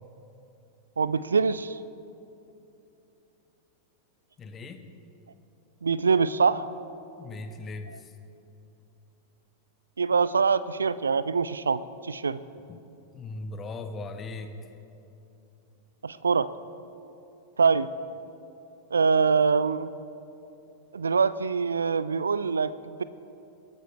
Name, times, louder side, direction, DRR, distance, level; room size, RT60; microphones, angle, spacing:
voice 1, 1.0-1.8 5.8-6.7 10.0-12.4 16.0-16.5 17.6-17.9 18.9-19.9 20.9-23.0, right 5 dB, 75° right, 16 dB, 0.3 m, -24 dB
voice 2, 4.4-4.8 7.2-8.1 12.7-12.8 13.1-14.8, left 3 dB, 25° left, 8 dB, 1.0 m, -39 dB
22.0 x 13.0 x 3.3 m, 2.8 s
figure-of-eight pair, 90°, 0 cm